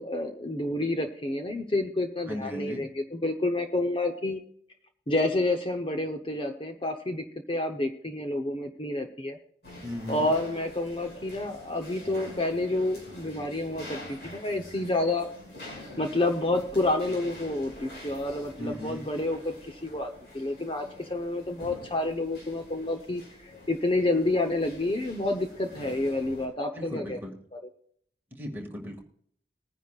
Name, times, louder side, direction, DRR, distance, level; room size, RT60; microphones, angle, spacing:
voice 1, 0.0-4.4 5.1-9.4 10.1-15.3 16.0-27.2, left 2 dB, 30° left, 5 dB, 0.9 m, -29 dB
voice 2, 2.3-2.9 9.8-10.3 18.6-19.1 26.7-27.4 28.3-29.0, left 1 dB, 10° right, 0 dB, 2.1 m, -37 dB
sound 1, 9.6-26.5, left 1 dB, 60° left, 6.3 m, -46 dB
21.0 x 10.0 x 2.5 m, 0.64 s
head